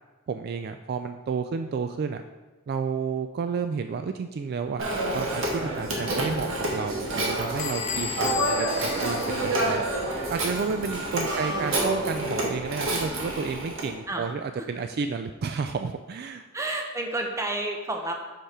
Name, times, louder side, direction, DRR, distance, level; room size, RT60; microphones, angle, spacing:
voice 1, 0.3-2.2 2.7-4.8 5.1-16.4, right 5 dB, 50° right, 7 dB, 0.3 m, -31 dB
Telephone, 4.8-13.9, right 1 dB, 75° right, 1.4 m, -28 dB
Bell / Squeak, 7.6-10.1, left 9 dB, 35° left, 0.6 m, -35 dB
voice 2, 16.5-18.1, right 2 dB, 15° right, 2 dB, 0.8 m, -31 dB
5.8 x 5.4 x 4.9 m, 1.2 s
head